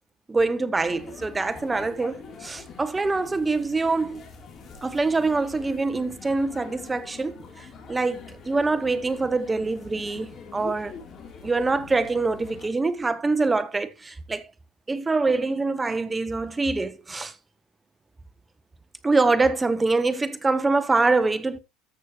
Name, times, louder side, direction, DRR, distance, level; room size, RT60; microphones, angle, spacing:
voice 1, 0.3-4.2 4.8-10.9 11.4-14.5 14.9-17.3 19.0-21.6, right 3 dB, 15° right, 1.0 m, -24 dB
sound 1, 0.7-12.7, left 5 dB, 40° left, 3.4 m, -44 dB
14.0 x 6.2 x 3.1 m
supercardioid pair, 105°, 0 cm